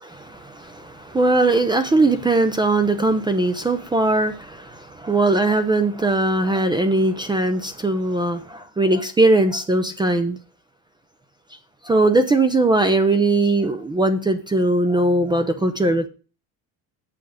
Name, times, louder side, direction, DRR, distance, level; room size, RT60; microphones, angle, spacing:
voice 1, 0.0-10.4 11.8-16.1, right 2 dB, 10° right, 9 dB, 0.5 m, -20 dB
7.6 x 5.8 x 6.4 m, 0.36 s
cardioid pair, 145°, 41 cm